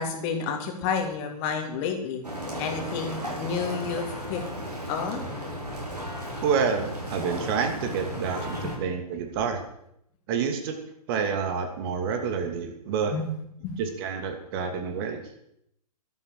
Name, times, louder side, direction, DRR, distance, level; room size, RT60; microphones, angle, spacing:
voice 1, 0.0-2.2 2.6-4.4 4.9-5.2 8.6-8.8 13.1-13.2 13.6-13.8, left 6 dB, 30° left, 4 dB, 2.7 m, -30 dB
sound 1, 2.2-8.8, equal, 90° right, 5.8 m, -35 dB
voice 2, 6.4-9.6 10.3-10.7 11.1-13.1 13.8-15.2, right 6 dB, 35° right, 5 dB, 2.6 m, -28 dB
13.0 x 10.5 x 6.6 m, 0.74 s
figure-of-eight pair, 115°, 20 cm